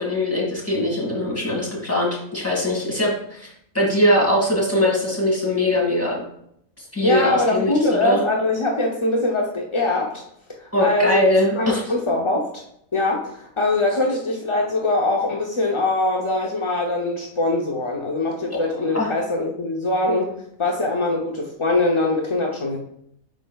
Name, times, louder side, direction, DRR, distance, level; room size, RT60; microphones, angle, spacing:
voice 1, 0.0-6.2 6.8-8.2 10.7-11.8 18.9-19.1, left 1 dB, 10° left, -4 dB, 2.0 m, -21 dB
voice 2, 7.0-10.2 10.6-11.2 11.5-12.6 12.9-22.8, left 2 dB, 40° left, -1 dB, 0.4 m, -22 dB
10.5 x 4.4 x 2.3 m, 0.73 s
omnidirectional pair, 1.4 m